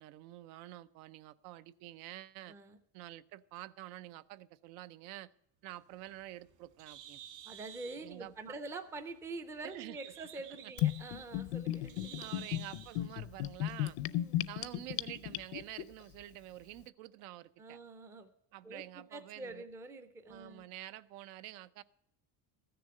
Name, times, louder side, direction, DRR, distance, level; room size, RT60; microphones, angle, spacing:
voice 1, 0.0-2.5 2.9-5.3 5.6-7.2 8.0-8.6 9.6-10.0 10.6-10.7 12.2-14.0 14.5-17.8 18.5-19.6 20.3-21.8, right 15 dB, 90° right, 15 dB, 0.7 m, -48 dB
Bird, 5.7-13.0, right 10 dB, 65° right, 2.6 m, -53 dB
voice 2, 7.5-12.5 14.0-14.4 17.6-18.3 18.6-20.7, right 3 dB, 5° right, 9 dB, 0.4 m, -46 dB
Gurgling / Bathtub (filling or washing), 10.8-15.8, left 14 dB, 65° left, 0.6 m, -35 dB
14.0 x 6.8 x 7.5 m, 0.75 s
cardioid pair, 170°, 42 cm